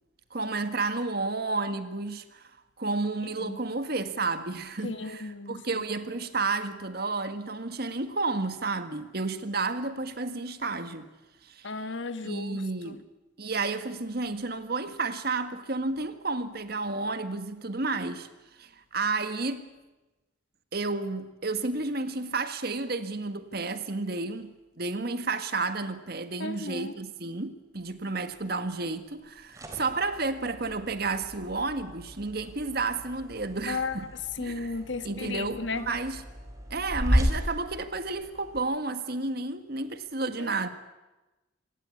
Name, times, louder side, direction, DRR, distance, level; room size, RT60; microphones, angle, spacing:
voice 1, 0.3-2.5 2.8-11.1 11.4-11.7 12.2-13.0 13.4-18.3 18.6-19.7 20.7-34.1 34.4-34.8 35.0-36.2 36.7-40.7, right 3 dB, 55° right, 1.7 m, -31 dB
voice 2, 4.8-5.6 11.6-13.0 26.4-26.9 33.7-34.0 34.4-35.9 40.4-40.6, left 3 dB, 70° left, 1.5 m, -34 dB
sound 1, 29.2-38.6, equal, 15° right, 3.7 m, -34 dB
26.0 x 18.5 x 8.5 m
head